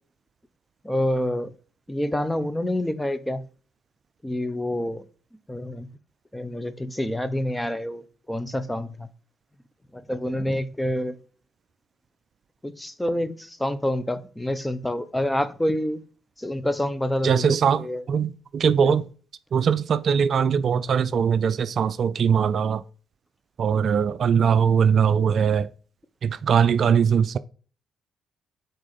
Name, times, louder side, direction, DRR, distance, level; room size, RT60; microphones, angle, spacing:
voice 1, 0.8-1.5 1.9-3.5 4.2-5.1 5.5-5.9 6.3-9.1 9.9-11.2 12.6-16.0 16.4-17.5 17.8-18.0 18.8-19.0, left 1 dB, 10° left, 0.8 m, -27 dB
voice 2, 17.2-19.1 19.5-22.8 23.6-25.7 26.2-27.4, right 7 dB, 60° right, 0.3 m, -21 dB
6.2 x 4.3 x 4.1 m
supercardioid pair, 55°, 0 cm